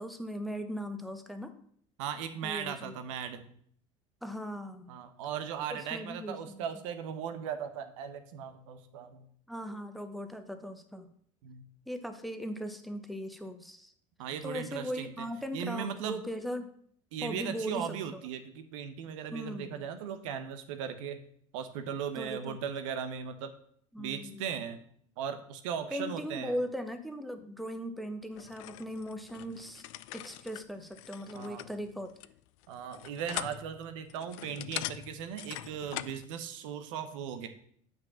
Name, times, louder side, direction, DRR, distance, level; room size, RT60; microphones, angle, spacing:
voice 1, 0.0-1.5 2.4-2.9 4.2-4.9 5.7-6.6 9.5-11.1 11.9-13.9 14.4-16.7 17.2-18.2 19.3-19.9 22.1-22.6 23.9-24.4 25.9-29.8 30.1-32.1, equal, ahead, 7 dB, 1.1 m, -39 dB
voice 2, 2.0-3.5 4.9-9.3 11.4-11.6 14.2-15.3 15.5-16.2 17.1-21.2 21.5-23.5 24.0-24.8 25.2-26.6 31.3-31.6 32.7-37.5, right 8 dB, 75° right, 8 dB, 1.0 m, -38 dB
sound 1, 28.3-36.2, left 16 dB, 70° left, 0.4 m, -43 dB
6.4 x 5.3 x 7.0 m, 0.62 s
hypercardioid pair, 75°, 17 cm